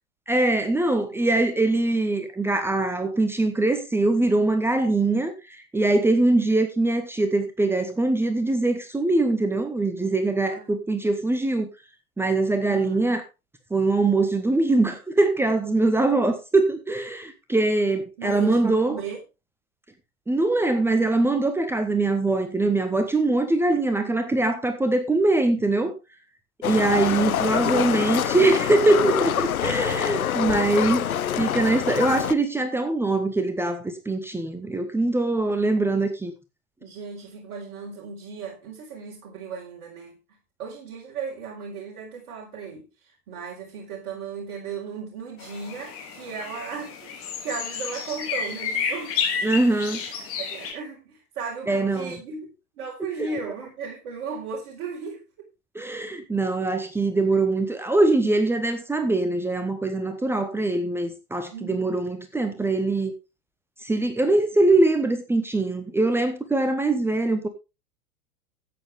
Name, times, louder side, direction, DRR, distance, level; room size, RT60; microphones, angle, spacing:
voice 1, 0.3-5.3 5.7-11.7 12.2-13.2 13.7-19.0 20.3-25.9 26.6-31.0 31.4-36.3 49.4-50.0 51.7-52.2 55.7-63.1 63.8-67.5, right 2 dB, 5° right, 1.1 m, -22 dB
voice 2, 10.4-10.7 12.7-13.1 18.2-19.2 27.2-27.4 28.0-28.5 29.2-29.3 36.8-40.2 40.6-42.9 43.3-49.2 49.7-49.9 50.2-52.5 52.8-55.5 61.5-61.8, right 5 dB, 40° right, 4.3 m, -36 dB
Livestock farm animals working animals, 26.6-32.3, left 10 dB, 70° left, 0.7 m, -26 dB
sound 1, 45.4-50.7, left 6 dB, 30° left, 3.3 m, -31 dB
13.5 x 9.2 x 3.4 m
figure-of-eight pair, 100°, 44 cm